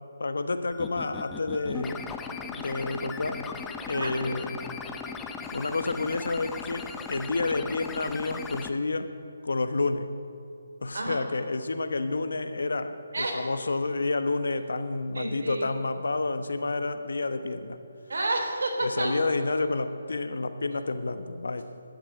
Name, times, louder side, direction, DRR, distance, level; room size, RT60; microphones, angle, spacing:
voice 1, 0.2-2.0 2.4-3.4 3.9-4.6 5.5-9.1 9.4-10.1 10.8-17.8 18.8-21.6, left 3 dB, 80° left, 10 dB, 1.3 m, -29 dB
sound 1, 0.7-8.7, left 5 dB, 5° left, 0.6 m, -38 dB
voice 2, 15.1-15.7 18.1-19.2, right 2 dB, 75° right, 1 dB, 3.7 m, -30 dB
11.5 x 10.5 x 9.1 m, 2.7 s
hypercardioid pair, 170°, 0 cm